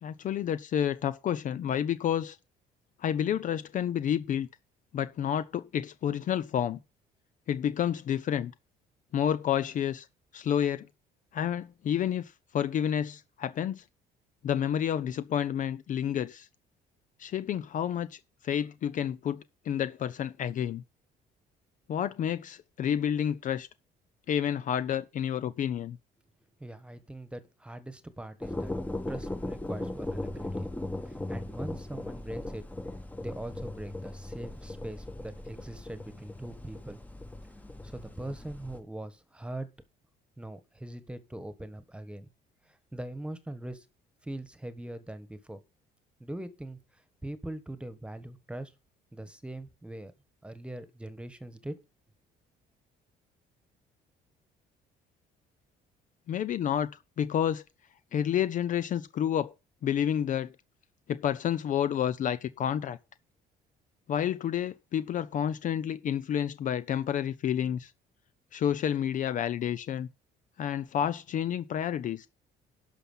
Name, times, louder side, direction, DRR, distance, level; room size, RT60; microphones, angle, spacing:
voice 1, 0.0-2.4 3.0-4.5 4.9-6.8 7.5-8.5 9.1-10.1 10.3-10.9 11.3-13.8 14.4-16.5 17.2-18.1 18.4-20.8 21.9-23.7 24.3-26.0 56.3-56.9 57.2-57.6 58.1-59.5 59.8-60.5 61.1-63.0 64.1-67.9 68.5-70.1 70.6-72.3, left 9 dB, 50° left, 0.6 m, -29 dB
voice 2, 26.6-28.7 29.1-30.7 31.0-32.6 33.2-37.0 37.8-39.7 40.4-42.3 42.9-43.8 44.2-45.6 46.2-46.8 47.2-48.7 49.1-50.1 50.4-51.7, right 1 dB, 5° right, 1.4 m, -41 dB
sound 1, 28.4-38.8, left 1 dB, 10° left, 1.1 m, -38 dB
11.5 x 5.8 x 5.5 m
cardioid pair, 110°, 17 cm